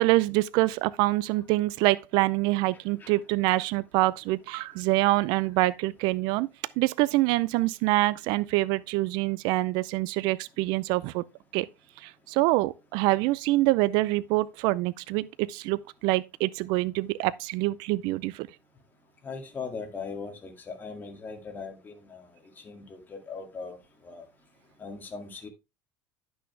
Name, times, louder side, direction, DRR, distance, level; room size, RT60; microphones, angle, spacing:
voice 1, 0.0-6.5 6.8-11.3 11.5-11.7 12.0-18.5, right 19 dB, 70° right, 0.5 m, -25 dB
voice 2, 19.2-21.9 22.7-23.8 24.0-24.2 24.8-25.5, left 4 dB, 25° left, 2.1 m, -39 dB
10.0 x 6.3 x 3.3 m
cardioid pair, 125°, 8 cm